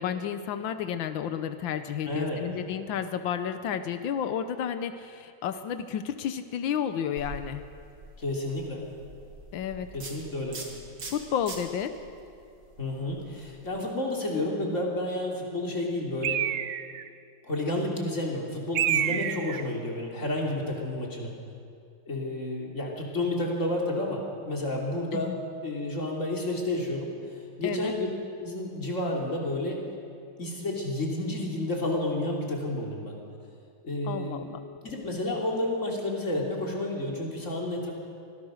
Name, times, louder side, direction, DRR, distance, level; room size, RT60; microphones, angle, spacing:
voice 1, 0.0-7.6 9.5-9.9 11.1-11.9 19.1-19.3 25.1-25.4 27.6-27.9 34.1-34.6, left 8 dB, 90° left, 10 dB, 1.7 m, -31 dB
voice 2, 2.1-2.5 8.2-8.8 9.9-10.6 12.8-16.4 17.4-21.3 22.1-25.3 25.6-27.1 27.6-28.1 28.4-29.8 30.4-33.2 33.8-34.4 34.8-37.9, left 1 dB, 40° left, -1 dB, 3.5 m, -30 dB
sound 1, 7.2-13.8, right 3 dB, 60° right, 2.9 m, -44 dB
Bird, 16.2-17.1 18.8-19.7, right 11 dB, 90° right, 0.6 m, -28 dB
24.5 x 16.5 x 6.5 m, 2.4 s
omnidirectional pair, 2.0 m